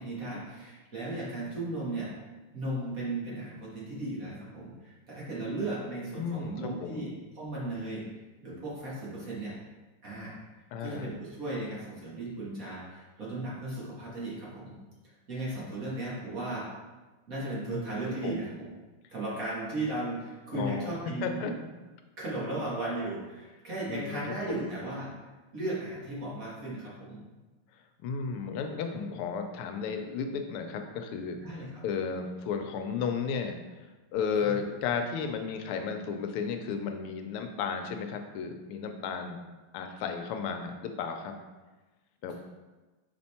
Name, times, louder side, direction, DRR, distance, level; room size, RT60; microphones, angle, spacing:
voice 1, 0.0-2.2 2.5-8.0 8.4-9.5 10.0-10.3 10.8-14.7 15.0-16.7 17.3-18.6 19.1-21.5 22.2-25.1 25.5-27.2 31.4-31.8 34.4-34.6, right 2 dB, 40° right, -7 dB, 2.0 m, -36 dB
voice 2, 6.1-6.5 6.8-7.0 10.7-11.1 17.7-18.0 18.2-18.5 20.5-20.9 21.2-21.5 23.9-24.7 28.0-31.4 31.8-33.6 34.1-39.4 39.7-41.3 42.2-42.4, left 6 dB, 85° left, 5 dB, 1.6 m, -33 dB
5.7 x 4.4 x 4.2 m, 1.2 s
omnidirectional pair, 2.4 m